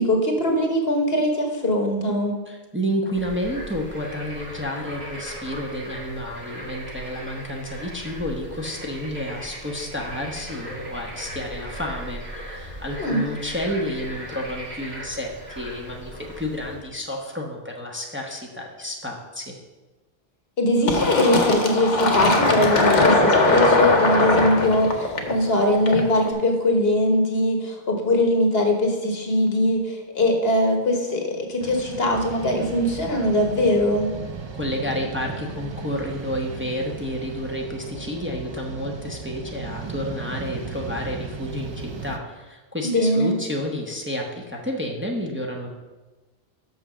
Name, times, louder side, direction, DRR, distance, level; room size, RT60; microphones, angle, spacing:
voice 1, 0.0-2.3 13.0-13.2 20.6-34.1 42.8-43.3, left 1 dB, 70° left, 2 dB, 1.6 m, -21 dB
voice 2, 2.5-19.5 34.5-45.7, equal, 10° right, 0 dB, 0.9 m, -30 dB
Bird / Frog, 3.1-16.9, equal, 75° right, 2.1 m, -38 dB
Fill (with liquid), 20.9-26.3, left 2 dB, 45° left, 1.0 m, -20 dB
sound 1, 31.6-42.2, right 4 dB, 35° right, 0.5 m, -36 dB
6.2 x 6.2 x 6.2 m, 1.2 s
omnidirectional pair, 1.1 m